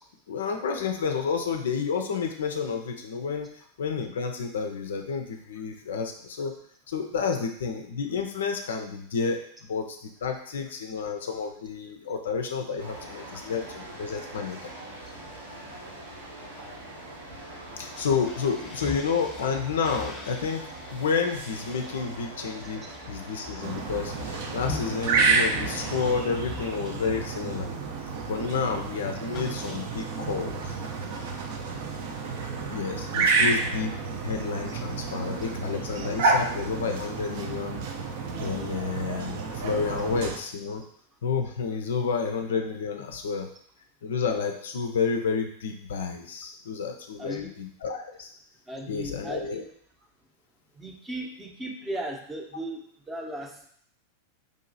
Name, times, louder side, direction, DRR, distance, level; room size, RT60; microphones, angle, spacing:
voice 1, 0.3-3.5 3.8-6.5 6.9-9.4 9.7-14.6 17.8-24.1 24.5-27.7 28.3-30.7 32.7-33.9 34.2-37.8 38.4-40.8 41.2-43.5 44.0-48.3 48.9-49.6, left 5 dB, 60° left, 5 dB, 0.4 m, -30 dB
sound 1, 12.8-26.2, right 1 dB, 80° right, 1.2 m, -42 dB
sound 2, 17.9-27.8 28.1-28.4 28.6-30.2, left 4 dB, 15° left, 0.9 m, -44 dB
sound 3, 23.6-40.4, right 4 dB, 50° right, 0.6 m, -29 dB
voice 2, 47.2-47.6 48.7-49.7 50.7-53.7, right 1 dB, 10° right, 0 dB, 0.7 m, -37 dB
5.0 x 2.8 x 2.6 m, 0.64 s
figure-of-eight pair, 90°, 0 cm